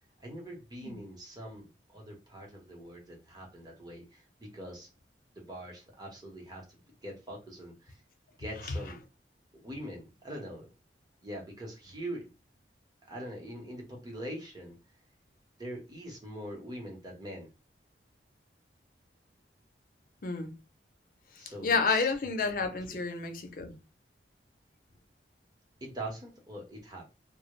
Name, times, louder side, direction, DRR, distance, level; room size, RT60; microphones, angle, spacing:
voice 1, 0.2-4.9 5.3-8.0 8.4-9.0 9.5-10.7 11.2-12.3 13.0-14.8 15.6-17.5 21.4-22.1 22.9-23.0 25.8-27.1, right 1 dB, 20° right, 0.8 m, -43 dB
voice 2, 21.4-23.7, left 4 dB, 50° left, 0.5 m, -30 dB
2.2 x 2.0 x 3.0 m
head